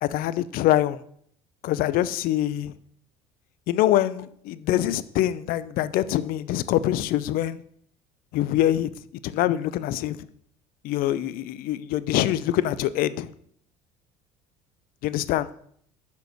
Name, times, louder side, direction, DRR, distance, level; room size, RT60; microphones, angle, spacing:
voice 1, 0.0-1.0 1.6-2.7 3.7-7.6 8.3-8.9 9.2-10.2 10.8-13.3 15.0-15.5, left 13 dB, 60° left, 0.6 m, -24 dB
6.2 x 5.5 x 6.4 m
hypercardioid pair, 65°, 17 cm